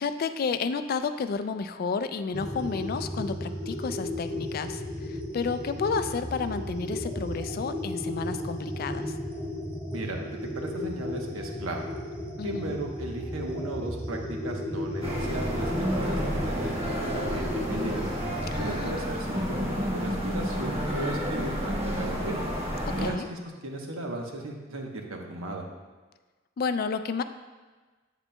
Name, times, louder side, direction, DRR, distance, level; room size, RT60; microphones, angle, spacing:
voice 1, 0.0-9.2 12.4-12.7 18.5-19.0 22.9-23.3 26.6-27.2, left 5 dB, 45° left, 10 dB, 0.3 m, -31 dB
sound 1, 2.3-18.9, left 1 dB, 10° right, 1.4 m, -34 dB
voice 2, 9.9-11.9 12.4-18.1 18.6-22.4 22.9-25.6, right 2 dB, 85° right, 1 dB, 1.0 m, -36 dB
sound 2, 15.0-23.1, equal, 30° right, 1.2 m, -30 dB
8.4 x 8.0 x 2.2 m, 1.3 s
head